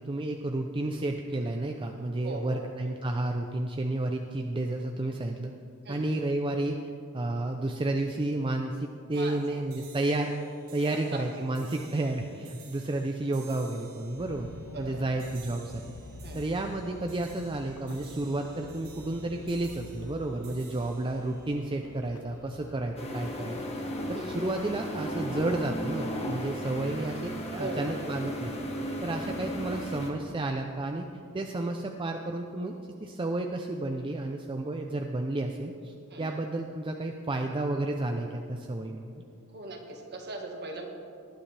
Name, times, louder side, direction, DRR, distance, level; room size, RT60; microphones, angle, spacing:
voice 1, 0.0-5.5 5.9-6.7 7.1-14.5 14.8-15.8 16.3-23.7 24.1-28.6 29.0-31.0 31.3-32.7 33.0-39.1, right 2 dB, 25° right, 3 dB, 0.5 m, -31 dB
voice 2, 2.2-2.6 5.9-6.1 9.1-9.4 11.1-11.2 14.7-15.1 16.2-16.4 24.1-24.3 27.5-27.9 36.1-36.4 39.5-40.9, right 2 dB, 50° right, 2 dB, 1.6 m, -39 dB
sound 1, 9.1-22.6, right 6 dB, 70° right, 2.7 m, -55 dB
sound 2, 14.2-30.7, left 3 dB, 70° left, 0.5 m, -49 dB
sound 3, 23.0-30.1, equal, 30° left, 1.5 m, -35 dB
19.0 x 11.5 x 3.3 m, 2.4 s
head